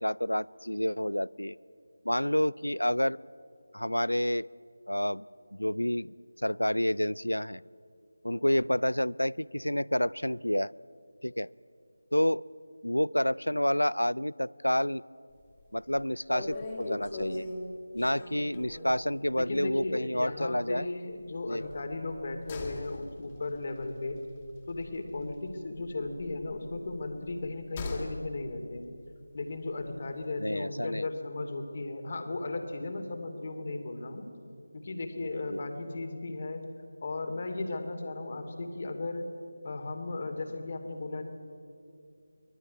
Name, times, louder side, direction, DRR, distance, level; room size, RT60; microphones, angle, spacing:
voice 1, 0.0-1.6 2.0-3.2 3.7-4.5 4.9-5.2 5.5-6.1 6.4-7.6 8.2-10.7 11.2-11.5 12.1-12.4 12.8-15.0 15.7-17.5 17.9-20.9 21.5-21.6 30.4-31.1 35.5-35.6, left 1 dB, 85° left, 23 dB, 0.5 m, -29 dB
sound 1, 15.4-15.7 15.9-16.0 16.3-19.0 19.4-19.6 19.8-19.9 21.6-25.5 25.8-28.2 28.5-28.6, left 2 dB, 20° left, 2.7 m, -40 dB
voice 2, 19.4-24.2 24.7-28.9 29.3-34.3 34.7-36.6 37.0-39.3 39.6-41.2, left 2 dB, 35° left, 6 dB, 2.8 m, -36 dB
24.0 x 19.0 x 9.5 m, 2.5 s
figure-of-eight pair, 165°, 0 cm